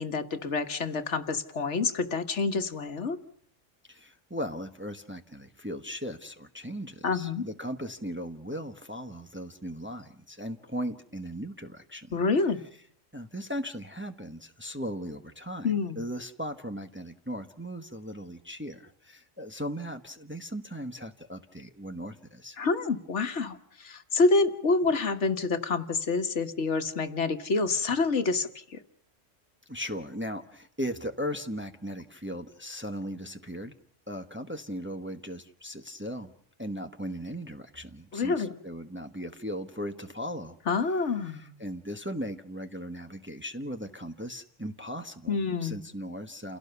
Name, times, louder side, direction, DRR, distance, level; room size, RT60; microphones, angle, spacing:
voice 1, 0.0-3.2 7.0-7.4 12.1-12.6 15.6-16.0 22.6-28.5 38.1-38.5 40.7-41.5 45.3-45.8, left 4 dB, 70° left, 8 dB, 1.6 m, -27 dB
voice 2, 3.9-12.2 13.1-22.6 29.7-33.7 34.1-36.3 36.6-40.9 41.2-46.6, equal, 10° right, 6 dB, 1.1 m, -38 dB
29.0 x 17.0 x 6.9 m, 0.65 s
omnidirectional pair, 1.3 m